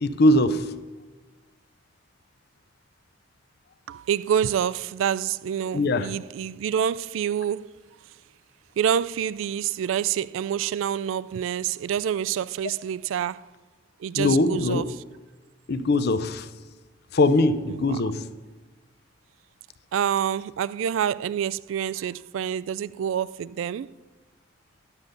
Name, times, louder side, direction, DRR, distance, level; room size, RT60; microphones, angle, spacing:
voice 1, 0.0-0.8 5.7-6.1 14.2-14.9 15.7-16.5 17.1-18.3, left 2 dB, 55° left, 0.5 m, -21 dB
voice 2, 3.9-7.7 8.8-13.5 14.0-15.0 17.7-18.0 19.9-24.0, right 9 dB, 80° right, 0.3 m, -27 dB
10.5 x 7.2 x 6.6 m
head